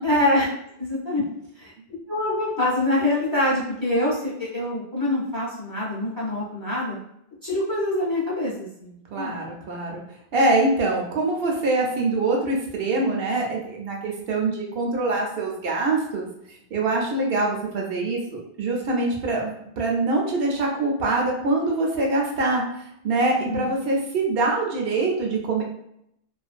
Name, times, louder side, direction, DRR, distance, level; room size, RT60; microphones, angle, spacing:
voice 1, 0.0-0.4 0.8-1.2 1.6-1.7 2.1-7.0 7.4-9.4 23.5-23.6, left 1 dB, 25° left, -7 dB, 0.7 m, -25 dB
voice 2, 9.1-10.0 10.3-16.3 16.7-22.6 23.0-25.6, right 2 dB, 75° right, -1 dB, 0.8 m, -24 dB
2.4 x 2.2 x 2.5 m, 0.74 s
omnidirectional pair, 1.0 m